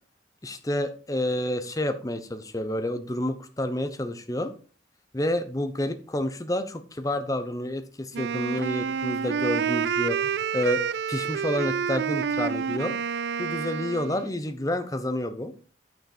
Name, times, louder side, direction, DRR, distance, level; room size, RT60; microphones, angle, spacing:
voice 1, 0.4-4.5 5.1-10.8 11.1-12.9 13.4-15.5, left 1 dB, 20° left, 9 dB, 0.8 m, -29 dB
Wind instrument woodwind instrument, 8.1-14.3, right 7 dB, 60° right, 0.3 m, -28 dB
9.2 x 5.7 x 4.2 m, 0.39 s
head